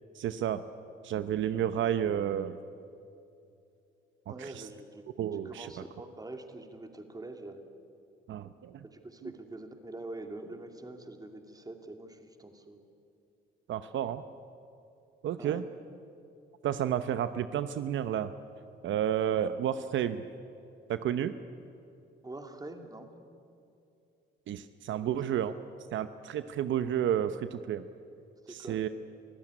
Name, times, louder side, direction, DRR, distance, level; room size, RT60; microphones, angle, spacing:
voice 1, 0.1-0.6 1.0-2.6 4.4-4.6 5.2-5.7 8.3-8.8 13.7-14.2 15.2-15.6 16.6-18.3 18.8-20.2 20.9-21.3 24.5-25.6 25.9-27.8 28.5-28.9, right 10 dB, 75° right, 11 dB, 0.8 m, -31 dB
voice 2, 4.3-5.0 5.3-7.6 8.8-12.8 15.4-15.6 22.2-23.1 25.0-25.2 28.4-28.8, right 2 dB, 20° right, 5 dB, 2.6 m, -44 dB
24.5 x 15.0 x 9.8 m, 2.6 s
cardioid pair, 90°, 20 cm